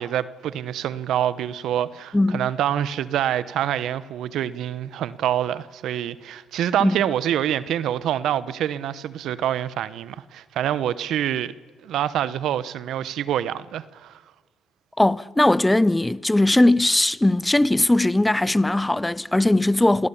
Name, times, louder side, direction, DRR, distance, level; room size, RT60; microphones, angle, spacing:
voice 1, 0.0-11.5 11.8-14.2, right 11 dB, 80° right, 0.9 m, -26 dB
voice 2, 2.1-2.4 6.8-7.0 15.0-20.1, left 1 dB, 10° left, 0.7 m, -19 dB
28.0 x 17.5 x 8.5 m
cardioid pair, 90°, 0 cm